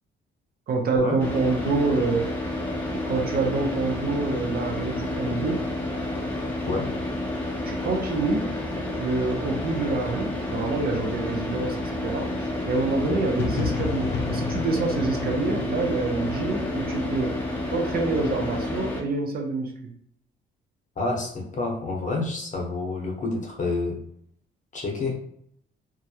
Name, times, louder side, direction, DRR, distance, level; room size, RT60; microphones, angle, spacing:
voice 1, 0.7-2.3 2.9-5.7 7.6-8.5 9.0-17.4 17.7-19.9, right 3 dB, 50° right, 2 dB, 0.5 m, -27 dB
Car / Idling, 1.2-19.0, left 1 dB, 10° left, 0.7 m, -30 dB
sound 1, 13.4-17.2, left 5 dB, 60° left, 0.4 m, -32 dB
voice 2, 21.0-24.0 24.7-25.1, left 3 dB, 40° left, -1 dB, 0.8 m, -28 dB
2.2 x 2.0 x 2.8 m, 0.70 s
cardioid pair, 90°, 20 cm